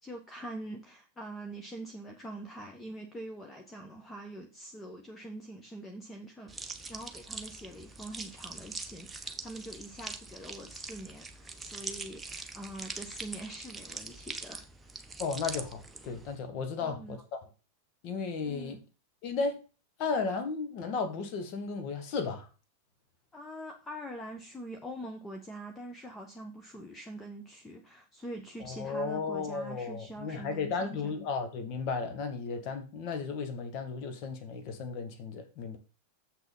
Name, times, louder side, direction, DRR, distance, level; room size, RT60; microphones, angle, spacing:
voice 1, 0.0-6.5 6.9-14.7 16.8-17.2 18.4-18.8 23.3-31.2, right 1 dB, 15° left, 1.2 m, -44 dB
sound 1, 6.5-16.4, right 3 dB, 10° right, 1.0 m, -43 dB
voice 2, 15.2-17.4 18.0-18.8 19.2-19.6 20.0-22.5 28.6-35.8, left 4 dB, 40° left, 2.0 m, -34 dB
7.4 x 6.2 x 5.5 m
figure-of-eight pair, 90°, 0 cm